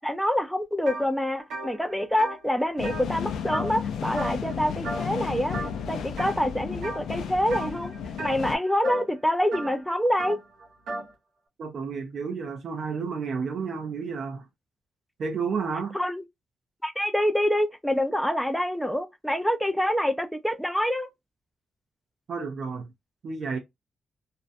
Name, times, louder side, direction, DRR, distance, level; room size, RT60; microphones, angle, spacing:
voice 1, 0.0-5.6 5.9-7.9 8.2-10.4 15.9-16.2 16.8-21.1, equal, ahead, 0.4 m, -26 dB
sound 1, 0.9-1.1 1.4-3.9 4.2-4.5 4.8-5.2 5.5-6.3 6.8-7.1 7.5-11.1, right 2 dB, 85° right, 1.0 m, -36 dB
sound 2, 2.8-8.6, left 7 dB, 85° left, 0.4 m, -33 dB
voice 2, 11.6-14.5 15.2-16.0 22.3-22.9 23.2-23.6, right 5 dB, 60° right, 0.5 m, -31 dB
2.5 x 2.1 x 2.5 m
cardioid pair, 90°, 0 cm